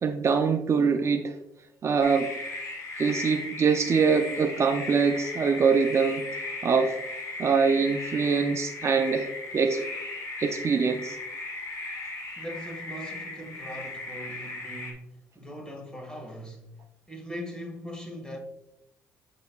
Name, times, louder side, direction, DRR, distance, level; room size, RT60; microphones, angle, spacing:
voice 1, 0.0-1.4 1.8-2.3 3.0-6.3 6.6-7.0 7.4-9.3 9.5-9.8 10.4-11.2, right 5 dB, 40° right, 0.5 m, -24 dB
sound 1, 2.0-14.9, left 2 dB, 50° left, 2.1 m, -37 dB
voice 2, 12.4-16.7 17.1-18.4, equal, 10° left, 1.9 m, -40 dB
6.6 x 6.4 x 2.4 m
supercardioid pair, 65°, 7 cm